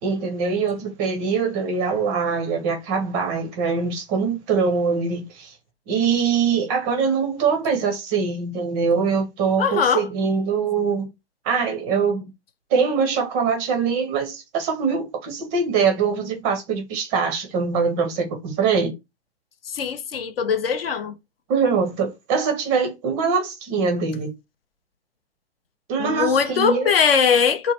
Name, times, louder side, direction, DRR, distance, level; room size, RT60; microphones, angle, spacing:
voice 1, 0.0-5.5 5.9-11.1 11.4-12.3 12.7-19.0 21.5-24.3 25.9-26.9, right 5 dB, 15° right, 0.5 m, -23 dB
voice 2, 9.6-10.1 19.7-21.2 26.0-27.7, left 6 dB, 60° left, 0.5 m, -21 dB
3.0 x 2.1 x 3.0 m
figure-of-eight pair, 120°, 34 cm